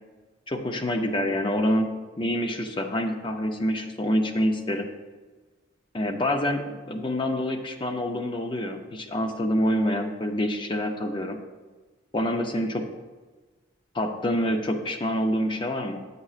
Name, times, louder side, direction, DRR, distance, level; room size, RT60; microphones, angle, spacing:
voice 1, 0.5-4.9 5.9-11.4 12.1-12.8 13.9-16.0, equal, 25° left, 4 dB, 0.5 m, -26 dB
8.7 x 8.1 x 2.4 m, 1.3 s
head